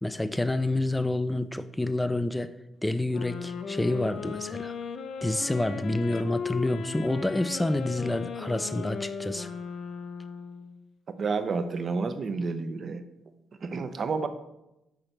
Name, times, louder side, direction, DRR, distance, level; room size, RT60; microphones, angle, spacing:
voice 1, 0.0-2.5 2.8-4.7 5.2-9.5, left 1 dB, 10° left, 11 dB, 0.3 m, -28 dB
sound 1, 3.1-10.8, left 6 dB, 60° left, 0.5 m, -37 dB
voice 2, 11.2-13.0 13.6-14.3, right 4 dB, 50° right, 9 dB, 0.5 m, -30 dB
5.9 x 3.9 x 4.5 m, 0.91 s
cardioid pair, 90°, 0 cm